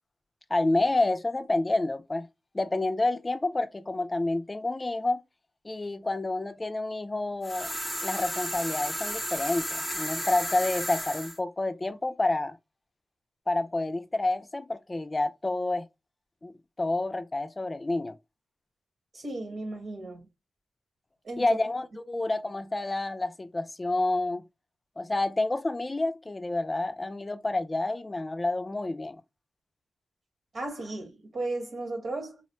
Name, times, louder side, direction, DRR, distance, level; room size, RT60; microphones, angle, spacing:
voice 1, 0.5-2.3 2.5-5.2 5.6-7.7 8.0-12.6 13.5-15.9 16.4-16.5 16.8-18.2 21.4-24.4 25.0-29.2, left 2 dB, 30° left, 0.4 m, -29 dB
sound 1, 7.4-11.4, equal, 5° right, 0.8 m, -33 dB
voice 2, 19.1-20.2 21.2-21.4 30.5-32.4, right 2 dB, 70° right, 1.5 m, -35 dB
4.0 x 2.1 x 2.9 m
cardioid pair, 60°, 0 cm